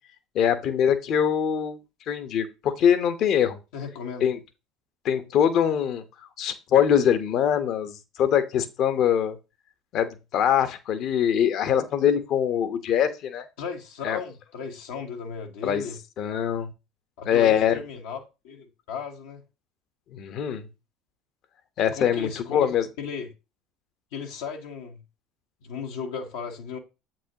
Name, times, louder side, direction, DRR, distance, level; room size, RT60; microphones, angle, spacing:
voice 1, 0.3-1.8 2.1-3.6 4.2-4.4 5.0-6.0 6.4-7.9 8.2-9.4 9.9-13.5 14.0-14.2 15.6-15.8 16.2-16.7 17.2-17.8 20.1-20.6 21.8-22.9, left 9 dB, 55° left, 1.1 m, -23 dB
voice 2, 3.7-4.2 13.6-16.0 17.2-19.4 21.9-22.7 23.0-23.3 24.1-25.0 25.6-26.8, left 6 dB, 75° left, 1.3 m, -35 dB
8.1 x 6.0 x 3.0 m
hypercardioid pair, 70°, 0 cm